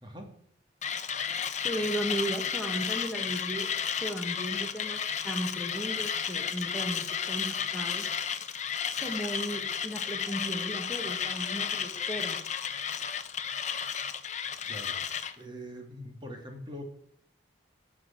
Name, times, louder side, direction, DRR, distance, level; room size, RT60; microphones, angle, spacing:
voice 1, 0.0-0.3 14.7-16.8, equal, 25° right, 3 dB, 2.1 m, -43 dB
Mechanisms, 0.8-15.4, left 7 dB, 40° left, 0.8 m, -33 dB
voice 2, 1.6-3.7 4.0-8.1 9.0-12.4, right 1 dB, 5° left, 1 dB, 1.5 m, -35 dB
14.0 x 6.4 x 8.8 m, 0.63 s
head